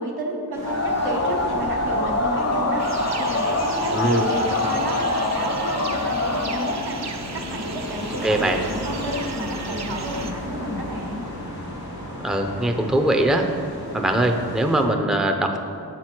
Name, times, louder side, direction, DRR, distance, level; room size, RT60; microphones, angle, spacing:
voice 1, 0.0-11.3, right 1 dB, 85° right, -2 dB, 1.3 m, -31 dB
sound 1, 0.5-14.9, left 1 dB, 90° left, 1.9 m, -34 dB
sound 2, 0.6-6.8, left 2 dB, 45° left, 0.9 m, -24 dB
sound 3, 2.8-10.3, right 4 dB, 45° right, 0.7 m, -37 dB
voice 2, 3.9-4.2 8.2-8.6 12.2-13.5 13.9-15.6, right 1 dB, ahead, 4 dB, 0.6 m, -21 dB
7.3 x 4.6 x 5.9 m, 2.5 s
cardioid pair, 50°, 37 cm